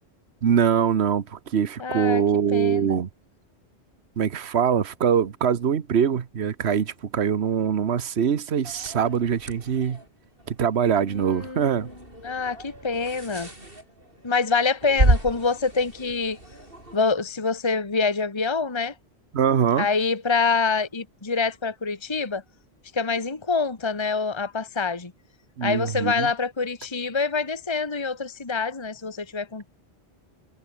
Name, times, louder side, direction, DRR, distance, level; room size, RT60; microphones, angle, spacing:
voice 1, 0.4-3.1 4.2-10.0 10.5-11.9 19.3-19.9 25.6-26.3, right 7 dB, 75° right, 1.4 m, -23 dB
voice 2, 1.8-2.2 2.5-3.0 11.0-11.9 12.2-13.5 14.2-16.4 16.9-18.9 19.8-22.4 22.9-25.1 25.6-29.7, left 4 dB, 25° left, 1.4 m, -26 dB
sound 1, 8.6-17.0, right 1 dB, 55° right, 7.9 m, -30 dB
omnidirectional pair, 1.1 m